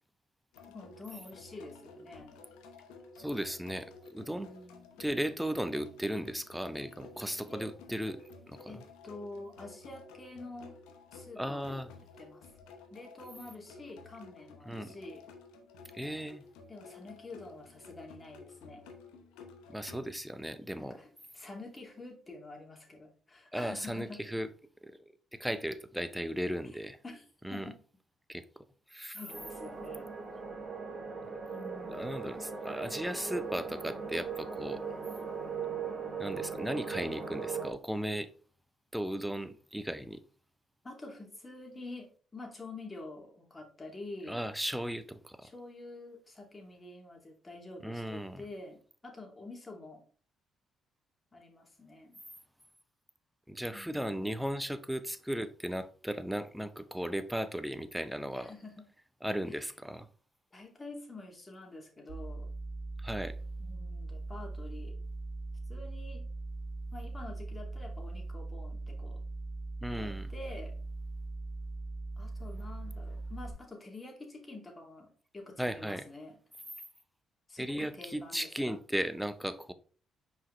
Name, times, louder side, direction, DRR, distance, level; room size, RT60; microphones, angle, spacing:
sound 1, 0.5-20.0, left 3 dB, 85° left, 0.9 m, -53 dB
voice 1, 0.7-2.4 4.3-5.1 7.4-7.7 8.7-10.7 11.1-11.8 12.2-12.5 12.9-15.2 16.7-18.8 20.8-24.2 27.0-27.2 27.5-27.7 29.1-30.1 31.5-32.4 40.8-44.4 45.4-50.0 51.3-52.2 53.7-54.4 58.3-58.9 59.5-59.7 60.5-62.5 63.6-65.0 65.7-66.2 66.9-69.2 69.9-70.7 72.2-76.4 77.5-78.5, left 2 dB, 30° left, 2.6 m, -47 dB
voice 2, 3.2-4.5 5.0-8.7 11.4-11.9 14.7-14.9 15.9-16.4 19.7-21.0 23.5-24.5 24.8-25.0 25.3-27.0 27.4-27.7 28.3-28.4 28.9-29.2 31.9-34.8 36.2-38.3 38.9-40.2 44.3-45.5 47.8-48.4 53.5-58.5 59.2-60.1 63.0-63.3 69.8-70.3 75.6-76.0 77.6-79.7, equal, 5° right, 0.8 m, -36 dB
sound 2, 29.3-37.7, right 5 dB, 45° right, 2.1 m, -39 dB
sound 3, 62.1-73.5, right 3 dB, 85° right, 1.9 m, -40 dB
5.8 x 4.9 x 3.3 m
supercardioid pair, 55°, 0 cm